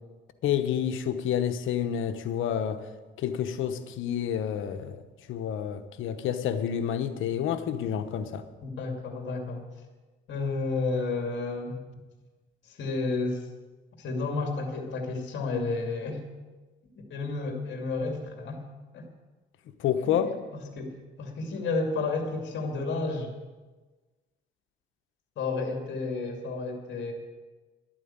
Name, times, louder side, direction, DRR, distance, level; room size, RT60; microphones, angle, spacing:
voice 1, 0.4-2.8 3.2-5.0 5.3-8.4 19.8-20.3, left 9 dB, 85° left, 9 dB, 1.1 m, -29 dB
voice 2, 8.6-9.7 10.3-11.8 12.6-13.5 14.0-16.2 17.0-18.6 18.9-19.1 20.0-20.3 20.5-23.3 25.4-27.1, left 3 dB, 65° left, 3 dB, 2.6 m, -31 dB
12.0 x 9.1 x 8.8 m, 1.3 s
cardioid pair, 90°, 20 cm